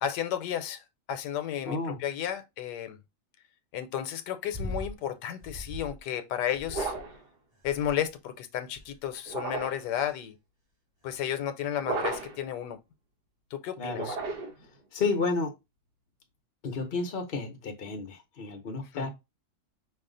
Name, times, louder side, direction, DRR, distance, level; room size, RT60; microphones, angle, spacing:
voice 1, 0.0-0.8 1.1-3.0 3.7-6.9 7.6-10.4 11.0-12.8 13.5-14.2 18.9-19.1, left 10 dB, 80° left, 1.2 m, -33 dB
voice 2, 1.6-2.0 13.8-14.1 14.9-15.5 16.6-19.1, left 4 dB, 50° left, 0.6 m, -31 dB
sound 1, 4.5-5.0 5.4-6.0 6.5-7.1 7.6-8.1 8.7-9.1 9.8-10.2 11.1-11.2, left 1 dB, 25° right, 1.6 m, -40 dB
sound 2, 6.7-7.2 9.3-9.9 11.8-12.5 13.9-14.7, right 4 dB, 75° right, 1.6 m, -34 dB
5.4 x 2.4 x 3.7 m
omnidirectional pair, 1.8 m